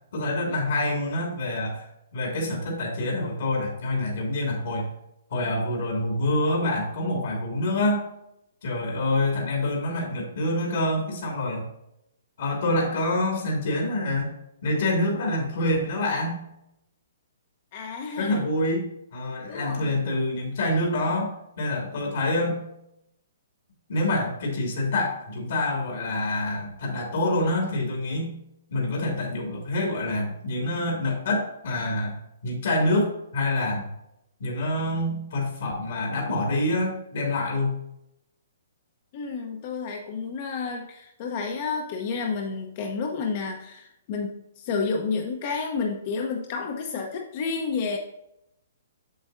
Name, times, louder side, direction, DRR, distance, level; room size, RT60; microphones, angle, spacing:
voice 1, 0.1-4.9 5.3-8.1 8.6-11.7 12.4-14.3 14.6-16.4 18.2-22.6 23.9-28.4 28.7-32.1 32.4-33.9 34.4-37.8, left 1 dB, 70° left, -1 dB, 2.3 m, -26 dB
voice 2, 17.7-18.5 19.5-20.0 39.1-44.3 44.6-48.0, left 5 dB, 40° left, 2 dB, 0.9 m, -30 dB
7.9 x 6.9 x 2.6 m, 0.80 s
hypercardioid pair, 150°, 0 cm